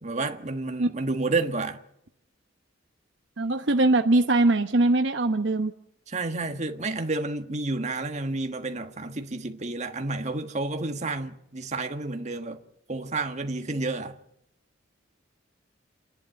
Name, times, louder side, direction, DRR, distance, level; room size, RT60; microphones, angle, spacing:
voice 1, 0.0-1.8 6.1-12.6 12.9-14.1, right 3 dB, 35° right, 1.5 m, -30 dB
voice 2, 3.4-5.7, right 2 dB, 65° right, 1.0 m, -21 dB
28.0 x 11.0 x 8.9 m
head